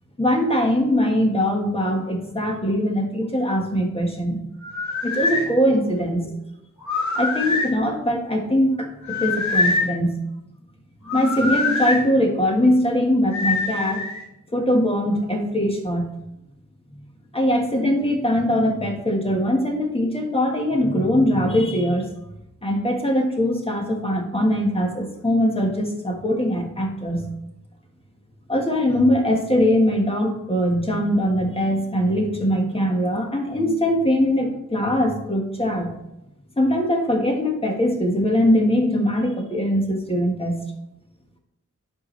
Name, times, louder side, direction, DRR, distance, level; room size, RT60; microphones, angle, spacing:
voice 1, 0.2-4.4 5.0-6.3 7.2-8.9 9.2-10.2 11.1-14.0 14.5-16.1 17.3-22.1 22.6-27.3 28.5-36.0 36.6-40.7, equal, 20° left, 1 dB, 1.5 m, -21 dB
sound 1, 4.6-5.5 6.8-7.7 9.0-9.9 11.1-12.0 13.3-14.2, left 3 dB, 65° left, 1.4 m, -24 dB
10.5 x 4.9 x 3.2 m, 0.88 s
wide cardioid pair, 95°, 31 cm